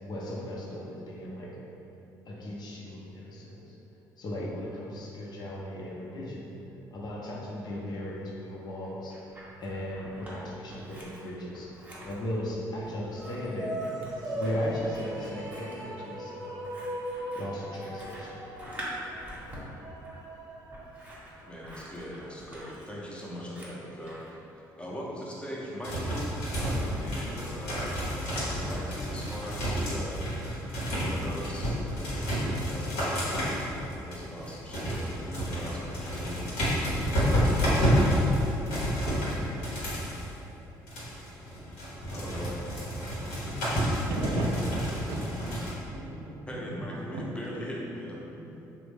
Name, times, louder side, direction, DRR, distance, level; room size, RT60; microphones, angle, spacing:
voice 1, 0.0-1.6 2.3-3.8 4.2-6.5 6.9-9.2 9.6-16.8 17.3-18.4, left 1 dB, 50° left, -4 dB, 0.7 m, -37 dB
Scissors, 8.8-10.4 10.7-24.3, equal, 20° right, 0.9 m, -46 dB
sound 1, 13.1-21.6, right 1 dB, 45° right, 0.7 m, -38 dB
voice 2, 21.4-24.4 24.8-30.2 31.0-37.4 42.1-42.6 43.3-43.4 46.5-48.2, equal, 10° left, -4 dB, 0.7 m, -41 dB
sound 2, 25.8-40.2 40.8-45.7, equal, 85° left, 0.8 m, -30 dB
voice 3, 44.1-45.6 45.9-46.5 47.1-48.7, right 1 dB, 85° right, -1 dB, 0.4 m, -36 dB
2.9 x 2.1 x 3.3 m, 2.9 s
supercardioid pair, 60°, 9 cm